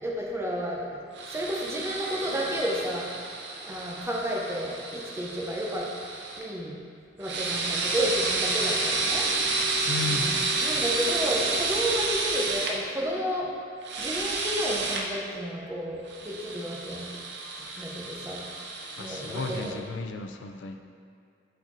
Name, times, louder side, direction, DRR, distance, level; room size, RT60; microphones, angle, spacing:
voice 1, 0.0-1.0 1.3-3.1 3.6-5.9 6.4-6.7 7.2-9.3 10.0-13.5 14.0-17.1 17.8-18.4 19.0-19.8, equal, 15° right, -3 dB, 0.7 m, -31 dB
sound 1, 1.2-6.4 7.2-12.7 13.8-15.0 16.1-19.7, right 3 dB, 65° right, 0.7 m, -30 dB
voice 2, 9.9-10.4 19.0-20.8, left 3 dB, 85° left, 6 dB, 0.4 m, -34 dB
7.6 x 3.9 x 3.1 m, 2.3 s
head